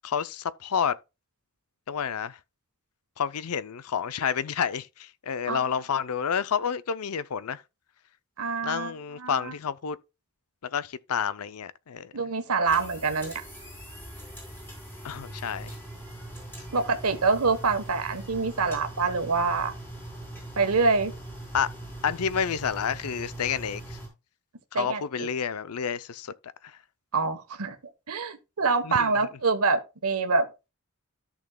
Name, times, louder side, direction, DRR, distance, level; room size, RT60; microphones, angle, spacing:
voice 1, 0.0-1.0 1.9-2.4 3.2-7.6 8.6-10.0 10.7-12.1 15.0-15.8 21.5-21.7 22.0-24.0 24.7-26.3 26.6-26.8 28.8-29.1, left 7 dB, 80° left, 0.6 m, -29 dB
voice 2, 8.4-8.9 9.2-9.5 12.1-13.4 16.7-19.7 20.6-21.1 24.7-25.3 27.1-27.8 28.1-30.5, right 4 dB, 75° right, 1.2 m, -26 dB
sound 1, 12.7-24.1, right 1 dB, 10° left, 4.2 m, -41 dB
13.5 x 6.3 x 2.3 m
head